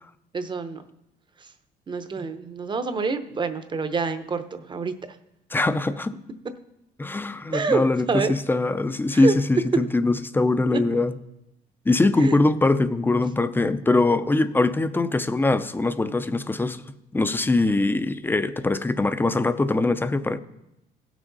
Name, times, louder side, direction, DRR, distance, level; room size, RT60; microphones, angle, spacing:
voice 1, 0.3-0.8 1.9-4.9 7.5-8.3 9.1-9.3 12.2-12.4, right 4 dB, 25° right, 0.8 m, -27 dB
voice 2, 5.5-6.2 7.0-11.1 11.9-16.8 17.1-20.4, left 2 dB, 10° left, 0.5 m, -22 dB
16.5 x 6.2 x 4.0 m
cardioid pair, 110°, 17 cm